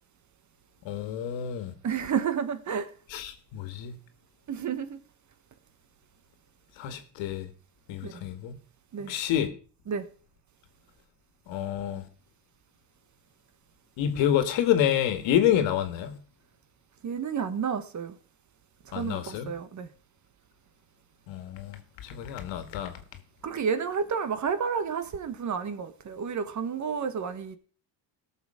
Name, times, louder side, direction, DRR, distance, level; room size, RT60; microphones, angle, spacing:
voice 1, 0.9-1.7 3.1-3.9 6.8-7.5 7.9-8.5 9.1-9.5 11.5-12.1 14.0-16.2 18.9-19.5 21.3-22.9, left 10 dB, 80° left, 1.8 m, -28 dB
voice 2, 1.8-2.9 4.5-5.0 8.0-8.1 8.9-9.1 9.9-10.0 17.0-18.1 18.9-19.9 23.4-27.6, right 6 dB, 40° right, 1.3 m, -30 dB
16.5 x 6.9 x 4.9 m
cardioid pair, 120°, 45 cm